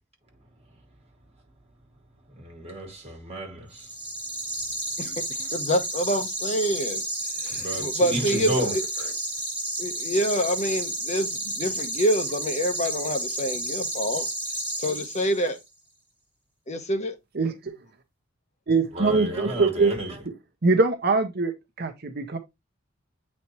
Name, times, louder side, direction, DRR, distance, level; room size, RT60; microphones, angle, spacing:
voice 1, 2.4-3.9 7.4-9.1 18.9-20.2, right 1 dB, 30° right, 2.6 m, -32 dB
sound 1, 3.7-15.6, right 1 dB, 10° right, 4.7 m, -31 dB
voice 2, 5.0-7.0 7.4-8.8 9.8-14.3 14.8-15.6 16.7-17.1, equal, 35° left, 1.0 m, -27 dB
voice 3, 17.3-17.7 18.7-19.9 20.6-22.4, right 3 dB, 55° right, 0.9 m, -23 dB
8.3 x 4.3 x 3.0 m
head